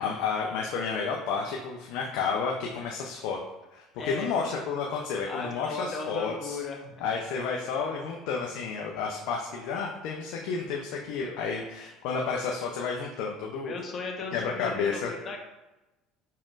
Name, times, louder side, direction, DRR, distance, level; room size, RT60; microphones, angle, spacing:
voice 1, 0.0-3.4 3.7-6.6 7.0-13.7 14.3-15.1, left 5 dB, 75° left, 0 dB, 0.5 m, -31 dB
voice 2, 4.0-4.3 5.2-6.9 11.1-11.4 13.6-15.4, left 4 dB, 40° left, 0 dB, 1.0 m, -36 dB
5.0 x 4.2 x 2.5 m, 1.0 s
supercardioid pair, 85°, 0 cm